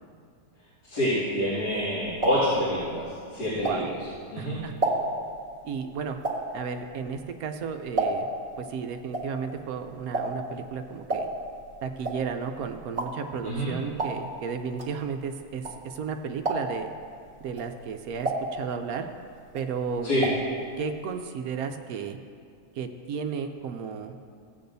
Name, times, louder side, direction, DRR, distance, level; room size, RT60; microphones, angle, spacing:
voice 1, 0.9-3.8 4.3-4.6 13.4-13.7 20.0-20.2, equal, 75° left, -13 dB, 3.1 m, -27 dB
sound 1, 1.7-4.2 4.6-8.5 8.8-16.1 16.4-16.9 17.4-19.1 19.4-20.5 20.8-20.9 21.1-21.2, right 2 dB, 35° right, 1.5 m, -32 dB
voice 2, 4.4-4.7 5.6-6.2 6.5-8.3 8.6-11.3 11.8-16.9 17.4-19.1 19.5-20.1 20.8-22.2 22.7-24.1, right 6 dB, 70° right, 6 dB, 1.0 m, -33 dB
16.5 x 8.5 x 2.7 m, 2.3 s
omnidirectional pair, 1.7 m